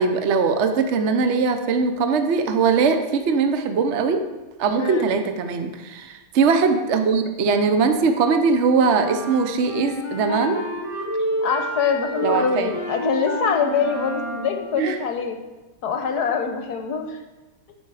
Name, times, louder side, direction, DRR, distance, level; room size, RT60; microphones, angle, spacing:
voice 1, 0.0-4.2 4.6-10.6 12.2-12.7 14.8-15.0, right 5 dB, 75° right, 7 dB, 0.6 m, -21 dB
sound 1, 9.0-14.7, equal, 15° left, 1.2 m, -29 dB
voice 2, 11.4-15.4 15.8-17.2, left 6 dB, 55° left, 5 dB, 1.3 m, -24 dB
13.0 x 6.0 x 4.8 m, 1.2 s
omnidirectional pair, 2.4 m